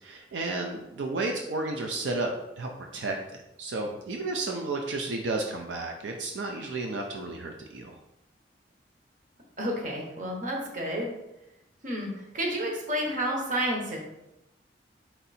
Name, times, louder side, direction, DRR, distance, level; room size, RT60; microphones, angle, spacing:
voice 1, 0.0-2.3 2.6-8.0, right 2 dB, 85° right, 2 dB, 0.5 m, -32 dB
voice 2, 9.6-11.1 11.8-14.0, equal, 45° right, 0 dB, 0.9 m, -30 dB
4.4 x 2.8 x 4.1 m, 0.89 s
head